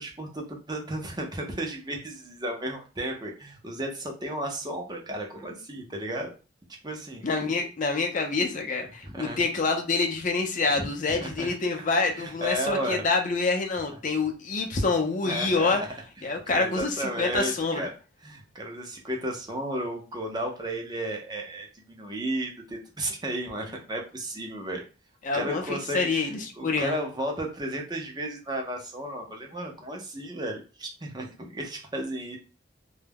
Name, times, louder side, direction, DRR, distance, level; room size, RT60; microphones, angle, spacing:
voice 1, 0.0-6.3 6.8-7.3 9.0-9.4 10.6-11.5 12.1-13.0 15.2-15.9 16.2-17.9 18.2-24.8 25.3-32.4, right 1 dB, 20° right, 1 dB, 0.5 m, -34 dB
voice 2, 7.2-15.8 16.2-17.9 25.2-27.0, left 3 dB, 40° left, 3 dB, 0.5 m, -27 dB
2.2 x 2.0 x 3.3 m, 0.33 s
head